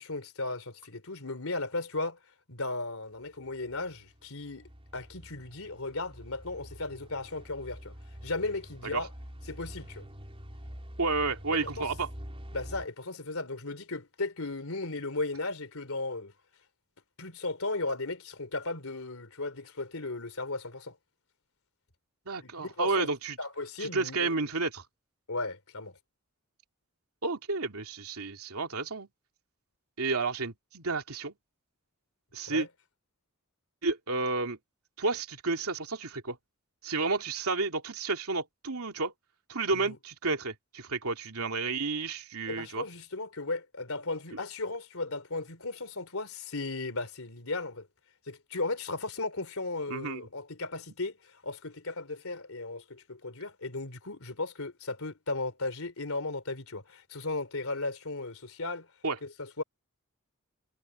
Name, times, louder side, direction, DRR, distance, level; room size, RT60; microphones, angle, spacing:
voice 1, 0.0-2.2 2.5-7.9 8.2-9.1 9.5-10.1 11.6-11.9 12.5-16.3 17.2-21.0 22.4-23.1 23.4-24.3 25.3-26.0 32.5-32.7 39.7-40.0 42.5-47.9 48.3-58.9 59.2-59.6, left 3 dB, 75° left, 3.7 m, -36 dB
sound 1, 3.2-12.9, equal, 25° right, 4.5 m, -47 dB
voice 2, 11.0-12.1 22.3-23.4 23.8-24.8 27.2-29.1 30.0-31.3 32.3-32.7 33.8-34.6 35.0-36.4 36.8-39.1 39.5-42.9 49.9-50.2 59.0-59.2, right 3 dB, 80° right, 2.7 m, -31 dB
head